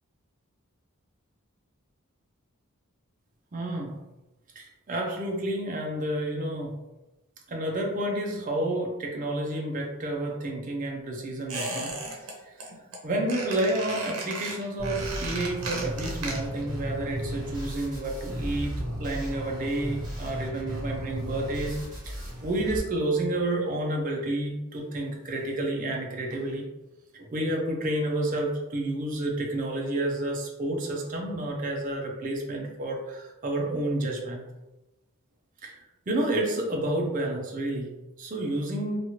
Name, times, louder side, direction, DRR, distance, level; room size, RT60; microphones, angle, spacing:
voice 1, 3.5-4.0 4.6-6.8 7.5-12.0 12.4-12.6 13.0-21.8 22.1-26.7 27.1-34.4 35.6-39.0, right 1 dB, 35° right, 0 dB, 0.5 m, -30 dB
Squeak, 11.5-12.3 12.6-13.0 13.3-16.7 16.9-17.0, right 2 dB, 80° right, 0.8 m, -35 dB
sound 1, 14.8-22.8, equal, 20° right, 1.2 m, -35 dB
2.9 x 2.3 x 2.9 m, 1.0 s
head